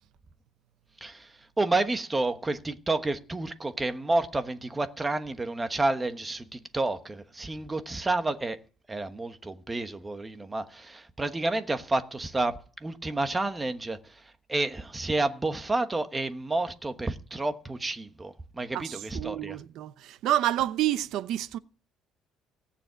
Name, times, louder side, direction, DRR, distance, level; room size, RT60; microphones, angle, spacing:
voice 1, 1.6-8.6 8.9-14.0 14.5-19.6, right 2 dB, 15° right, 1.1 m, -30 dB
voice 2, 18.7-21.6, right 13 dB, 65° right, 0.7 m, -29 dB
18.0 x 7.1 x 9.2 m
cardioid pair, 160°, 0 cm